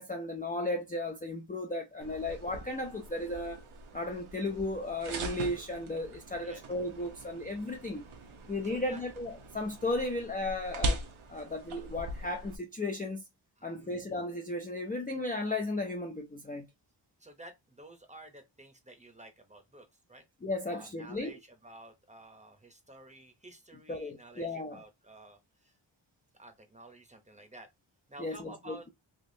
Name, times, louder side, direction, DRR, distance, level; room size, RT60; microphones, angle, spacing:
voice 1, 0.0-3.6 3.9-8.0 8.5-11.0 11.3-13.3 13.6-16.7 20.4-21.4 23.9-24.8 28.2-28.9, left 2 dB, 20° left, 0.4 m, -35 dB
sound 1, 2.0-12.6, right 2 dB, 80° right, 0.9 m, -41 dB
voice 2, 8.6-9.0 13.6-14.0 17.2-20.2 20.7-25.7 26.4-27.7 28.1-28.8, right 1 dB, 15° right, 0.7 m, -52 dB
3.5 x 2.9 x 2.7 m
wide cardioid pair, 105°, 48 cm